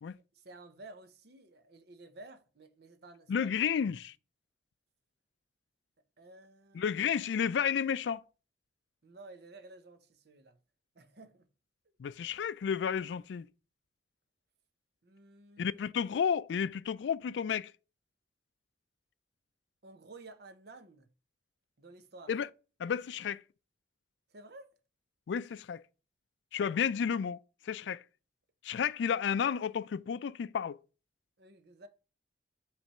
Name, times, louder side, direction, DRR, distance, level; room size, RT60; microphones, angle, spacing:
voice 1, 0.3-3.5 6.2-6.9 9.0-10.6 10.9-11.5 15.0-15.8 19.8-21.1 21.8-22.3 24.3-24.7 31.4-31.9, right 2 dB, 65° right, 0.8 m, -53 dB
voice 2, 3.3-4.1 6.7-8.2 12.0-13.5 15.6-17.7 22.3-22.5 22.8-23.4 25.3-25.8 26.5-27.4 27.6-28.0 28.6-30.8, left 7 dB, 80° left, 0.3 m, -32 dB
5.9 x 3.3 x 5.5 m
head